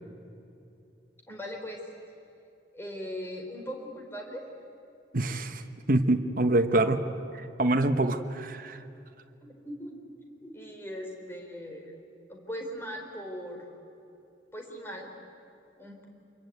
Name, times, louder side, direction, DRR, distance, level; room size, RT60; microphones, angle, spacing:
voice 1, 1.3-1.8 2.7-4.4 9.4-10.0 10.4-12.0 12.3-13.6 14.5-15.1 15.8-16.1, equal, 15° left, 1 dB, 4.2 m, -39 dB
voice 2, 5.1-5.6 5.9-7.0 7.3-8.8, right 2 dB, 50° right, 6 dB, 1.1 m, -25 dB
25.5 x 22.5 x 9.4 m, 2.7 s
head